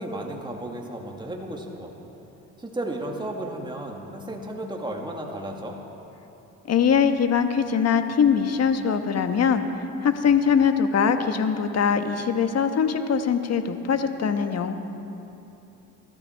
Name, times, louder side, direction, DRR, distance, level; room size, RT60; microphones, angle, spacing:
voice 1, 0.0-1.9 2.6-5.8, right 1 dB, 15° right, 0 dB, 2.1 m, -33 dB
voice 2, 6.6-9.7 10.0-14.7, left 7 dB, 45° left, 8 dB, 1.3 m, -22 dB
22.0 x 13.5 x 4.6 m, 2.9 s
supercardioid pair, 80°, 34 cm